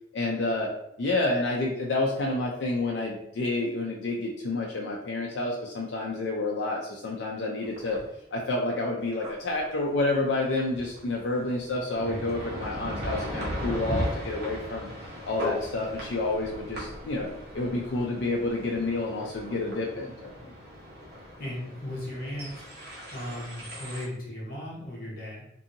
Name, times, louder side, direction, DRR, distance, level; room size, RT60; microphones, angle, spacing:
voice 1, 0.1-0.7 1.0-8.0 8.3-14.9 15.2-17.3 17.5-20.5, left 2 dB, 80° left, -2 dB, 0.4 m, -29 dB
sound 1, 7.6-8.0 8.7-8.8 9.1-9.3 9.6-9.8 10.3-24.0, equal, 60° right, 1.0 m, -37 dB
voice 2, 21.4-22.6 23.1-25.5, left 1 dB, 50° left, -4 dB, 0.9 m, -36 dB
2.6 x 2.6 x 2.6 m, 0.77 s
head